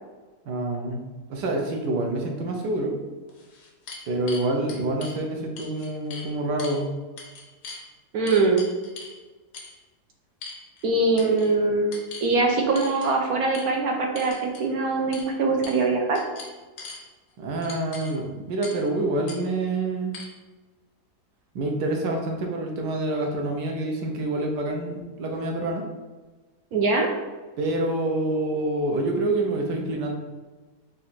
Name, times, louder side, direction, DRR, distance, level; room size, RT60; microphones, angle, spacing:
voice 1, 0.5-1.0 1.3-2.9 4.1-6.9 17.4-20.2 21.5-25.8 27.6-30.1, right 2 dB, 90° right, 1 dB, 1.4 m, -27 dB
sound 1, 3.3-5.2 5.6-6.3 6.6-6.8 7.2-7.8 8.3-9.2 9.5-9.8 10.4-10.9 11.2-11.5 11.9-12.3 12.8-13.1 13.5-13.7 14.2-14.7 15.1-15.3 15.6-15.9 16.2-17.0 17.6-18.1 18.6-18.9 19.3-19.4 20.1-20.2, left 4 dB, 85° left, 1.4 m, -40 dB
voice 2, 8.1-8.6 10.8-11.9 12.2-16.2 26.7-27.1, right 3 dB, 70° right, 1 dB, 1.0 m, -22 dB
4.1 x 2.5 x 4.2 m, 1.3 s
omnidirectional pair, 1.8 m